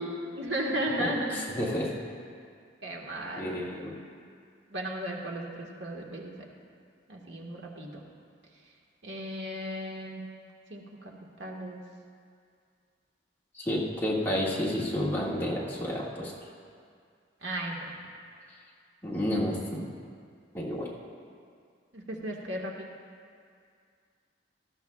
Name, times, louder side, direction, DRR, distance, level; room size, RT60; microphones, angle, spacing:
voice 1, 0.4-1.4 2.8-3.7 4.7-6.3 7.1-8.0 9.0-10.2 10.7-11.1 11.4-11.8 17.4-17.9 21.9-22.9, right 1 dB, 80° right, -1 dB, 1.5 m, -35 dB
voice 2, 1.0-1.9 3.4-4.0 13.5-16.3 19.0-19.8 20.5-20.9, left 1 dB, 10° left, -7 dB, 1.8 m, -30 dB
18.0 x 13.0 x 2.3 m, 2.2 s
head